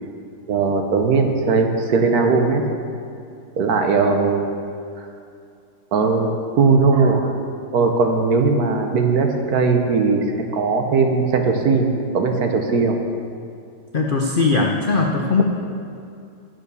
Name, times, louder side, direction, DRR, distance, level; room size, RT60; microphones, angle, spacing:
voice 1, 0.5-2.6 3.6-4.4 5.9-6.3 6.6-7.3 7.7-10.2 10.5-11.9 12.1-13.0, right 4 dB, 60° right, 4 dB, 1.3 m, -18 dB
voice 2, 13.9-15.4, left 4 dB, 75° left, 1 dB, 0.4 m, -19 dB
9.5 x 7.1 x 6.8 m, 2.4 s
omnidirectional pair, 2.0 m